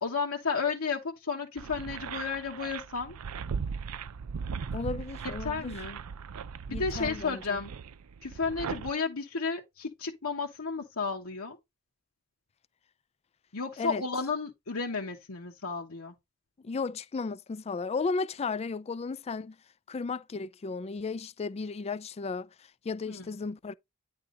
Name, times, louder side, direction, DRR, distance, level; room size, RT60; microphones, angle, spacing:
voice 1, 0.0-3.1 5.4-6.0 6.7-7.7 8.2-11.6 13.5-16.1 23.1-23.3, left 5 dB, 75° left, 1.2 m, -33 dB
sound 1, 1.6-8.9, right 6 dB, 90° right, 0.5 m, -38 dB
voice 2, 4.7-5.7 6.7-7.6 13.8-14.0 16.6-19.6 19.9-23.7, left 4 dB, 30° left, 0.3 m, -34 dB
9.7 x 3.6 x 3.9 m
head